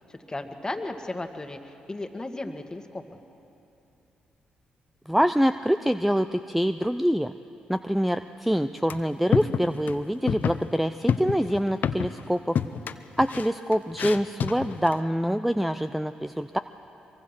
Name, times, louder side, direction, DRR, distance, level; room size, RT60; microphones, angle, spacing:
voice 1, 0.1-3.0, left 2 dB, 20° left, 6 dB, 2.1 m, -35 dB
voice 2, 5.1-7.3 7.7-12.6 13.2-16.6, equal, 5° right, 11 dB, 0.6 m, -25 dB
sound 1, 8.9-9.0 9.3-10.0 10.3-10.7 11.1-12.3 12.6-15.0, left 7 dB, 60° left, 0.8 m, -28 dB
23.5 x 23.0 x 6.1 m, 2.8 s
hypercardioid pair, 45°, 3 cm